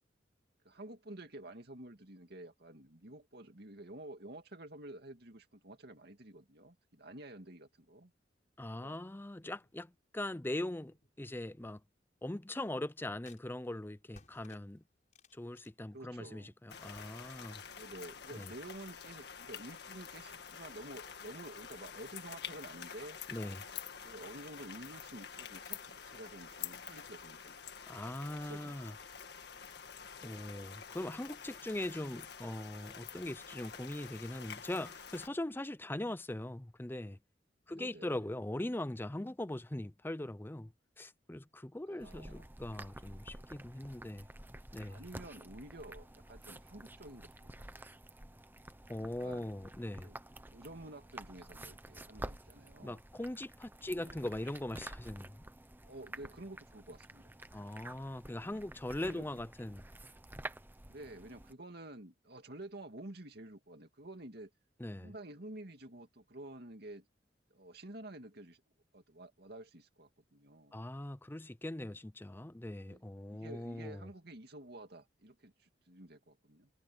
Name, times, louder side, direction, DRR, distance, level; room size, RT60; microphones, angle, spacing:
voice 1, 0.6-8.1 8.8-9.0 15.9-16.5 17.7-23.2 24.0-27.7 28.3-28.7 37.7-38.3 41.9-42.5 44.9-47.5 47.8-47.9 49.2-49.5 50.0-50.2 50.5-53.0 53.8-54.2 55.8-57.2 59.1-59.3 60.9-64.5 65.0-67.1 67.5-68.6 68.9-70.8 72.9-73.0 73.3-76.7, right 1 dB, 60° right, 2.3 m, -50 dB
voice 2, 8.6-11.8 12.2-14.8 15.3-17.6 18.3-18.5 23.3-23.7 27.9-28.9 30.2-37.2 37.7-44.3 44.7-45.0 48.9-50.1 52.8-55.5 57.5-59.9 64.8-65.1 70.7-74.1, left 1 dB, 10° left, 0.6 m, -41 dB
sound 1, 9.5-9.9 10.2-11.8 13.3-13.4 14.1-16.3 16.9-17.4, left 3 dB, 45° left, 5.4 m, -65 dB
sound 2, 16.7-35.3, left 7 dB, 65° left, 1.8 m, -48 dB
sound 3, 42.0-61.5, right 1 dB, 10° right, 0.9 m, -50 dB
head